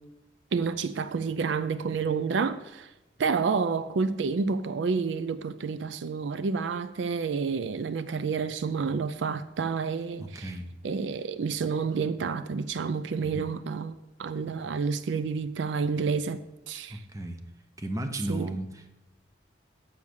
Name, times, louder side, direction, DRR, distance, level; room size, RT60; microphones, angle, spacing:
voice 1, 0.5-2.9 3.2-10.4 10.8-17.0 18.3-18.5, right 5 dB, 75° right, 0.4 m, -29 dB
voice 2, 10.2-10.7 13.2-13.5 16.9-17.5 17.8-18.9, right 1 dB, 20° right, 0.8 m, -35 dB
7.2 x 7.0 x 6.3 m
head